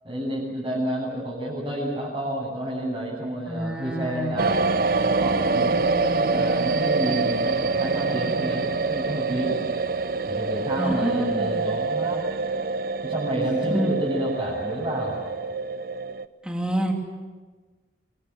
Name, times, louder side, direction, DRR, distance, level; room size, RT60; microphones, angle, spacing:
voice 1, 0.0-9.6 10.3-12.2 13.0-15.2, right 1 dB, 25° right, -7 dB, 7.6 m, -30 dB
voice 2, 3.5-4.3 10.8-11.6 13.6-13.9 16.4-16.9, equal, 5° right, 1 dB, 3.0 m, -27 dB
sound 1, 4.4-16.3, right 4 dB, 55° right, 0.8 m, -25 dB
27.0 x 22.0 x 7.8 m, 1.4 s
head